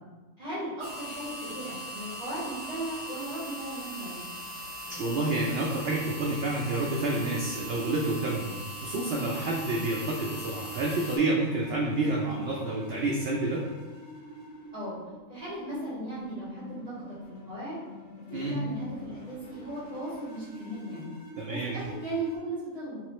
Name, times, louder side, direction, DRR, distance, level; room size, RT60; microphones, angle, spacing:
voice 1, 0.4-4.2 14.7-15.0 15.3-17.8 18.3-21.1 21.4-23.0, right 1 dB, 30° right, -12 dB, 1.7 m, -37 dB
sound 1, 0.8-11.2, equal, 15° left, 0.8 m, -40 dB
sound 2, 4.9-22.4, left 1 dB, 75° left, 1.3 m, -46 dB
voice 2, 4.9-8.5 8.8-13.6 18.3-18.5 21.4-21.7, right 2 dB, 65° right, -2 dB, 0.6 m, -29 dB
3.5 x 3.1 x 3.0 m, 1.2 s
omnidirectional pair, 1.5 m